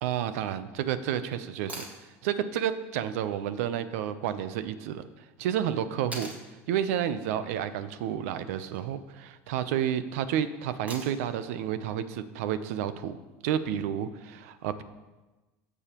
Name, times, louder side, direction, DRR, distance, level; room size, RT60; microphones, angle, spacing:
voice 1, 0.0-1.8 2.2-6.3 6.7-13.2 13.4-14.8, right 10 dB, 80° right, 12 dB, 0.7 m, -30 dB
sound 1, 1.7-2.0 4.2-4.3 6.1-6.4 8.5-8.9 10.9-11.4 13.5-13.6, right 1 dB, 20° right, 1.8 m, -41 dB
16.5 x 7.0 x 3.0 m, 1.2 s
supercardioid pair, 125°, 8 cm